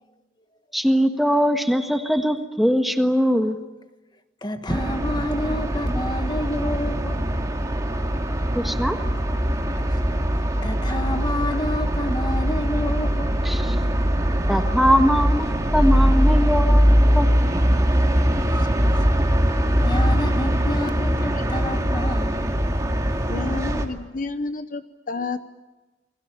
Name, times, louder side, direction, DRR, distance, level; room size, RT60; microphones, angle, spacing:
voice 1, 0.7-3.6 8.5-9.0 13.4-13.8 14.5-17.3, equal, ahead, 1.5 m, -21 dB
voice 2, 4.4-7.3 10.3-13.4 18.7-18.8 19.8-22.5, left 1 dB, 25° left, 1.4 m, -29 dB
sound 1, 4.7-23.8, equal, 20° right, 2.3 m, -21 dB
voice 3, 23.3-25.4, left 3 dB, 45° left, 0.9 m, -30 dB
29.5 x 21.0 x 8.5 m
head